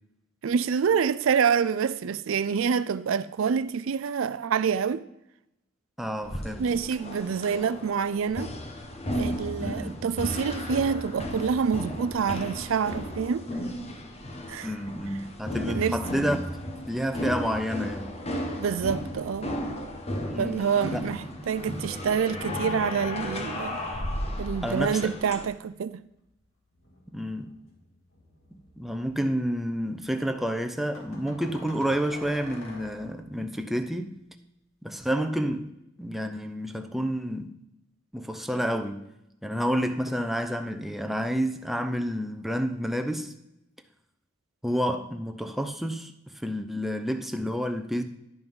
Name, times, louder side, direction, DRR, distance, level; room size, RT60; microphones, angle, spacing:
voice 1, 0.4-5.0 6.6-8.5 9.1-13.5 14.5-14.7 15.7-16.0 18.6-19.5 20.4-23.8 24.4-26.0, right 6 dB, 70° right, 0.4 m, -27 dB
voice 2, 6.0-6.8 9.6-10.1 14.6-16.6 16.9-18.2 20.3-21.0 24.5-25.2 27.1-27.5 28.8-34.2 34.8-35.7 36.0-37.5 38.1-39.2 39.4-43.3 44.6-48.0, equal, ahead, 0.6 m, -30 dB
sound 1, 6.2-25.5, left 1 dB, 30° left, 1.1 m, -35 dB
sound 2, 22.4-24.7 26.7-30.0 30.3-30.4 30.7-30.8 30.9-33.4, left 1 dB, 70° left, 2.5 m, -45 dB
10.5 x 5.7 x 5.5 m
head